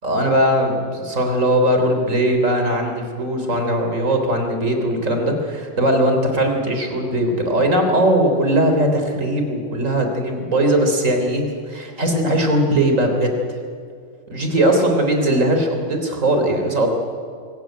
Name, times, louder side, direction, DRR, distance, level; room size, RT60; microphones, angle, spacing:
voice 1, 0.0-13.3 14.3-16.9, right 1 dB, 80° right, 4 dB, 3.8 m, -19 dB
24.0 x 15.5 x 9.2 m, 2.3 s
omnidirectional pair, 1.3 m